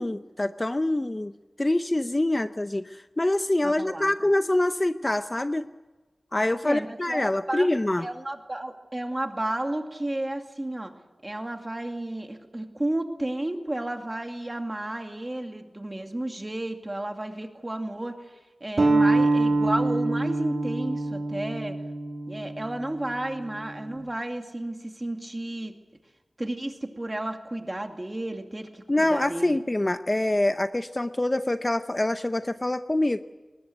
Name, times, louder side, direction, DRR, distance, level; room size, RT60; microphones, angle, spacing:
voice 1, 0.0-1.3 1.6-5.7 6.3-8.1 28.9-33.2, left 1 dB, 25° left, 10 dB, 0.6 m, -25 dB
voice 2, 3.6-4.3 6.6-7.7 8.0-10.9 11.2-18.2 18.6-21.8 22.3-25.7 26.4-29.6, right 1 dB, 25° right, 4 dB, 2.5 m, -32 dB
sound 1, 18.8-24.0, right 2 dB, 50° right, 3.2 m, -25 dB
21.5 x 20.0 x 8.0 m, 1.2 s
wide cardioid pair, 95°, 0 cm